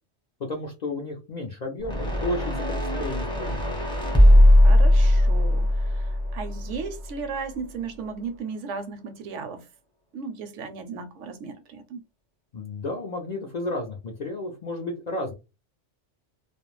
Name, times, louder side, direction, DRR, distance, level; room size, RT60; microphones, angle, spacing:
voice 1, 0.4-3.6 12.5-15.3, left 2 dB, 60° left, 0.4 m, -32 dB
sound 1, 1.8-7.1, left 1 dB, 5° left, 0.5 m, -19 dB
voice 2, 4.6-9.6 10.1-12.0, right 5 dB, 75° right, 0.9 m, -35 dB
2.4 x 2.0 x 3.0 m
omnidirectional pair, 1.3 m